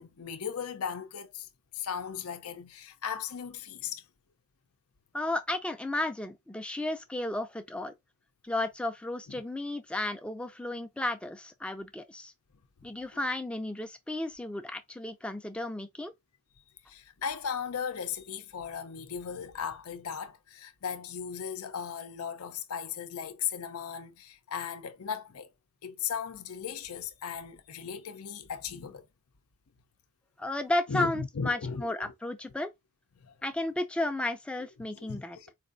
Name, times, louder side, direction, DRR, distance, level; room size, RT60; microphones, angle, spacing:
voice 1, 0.0-1.5 1.7-4.0 7.4-7.5 16.6-25.5 25.8-29.1 30.9-32.1 33.2-33.3 34.9-35.5, left 7 dB, 85° left, 0.6 m, -37 dB
voice 2, 5.1-7.9 8.4-12.3 12.8-16.1 30.4-32.7 33.4-35.4, left 2 dB, 5° left, 0.4 m, -33 dB
4.1 x 2.6 x 2.5 m
head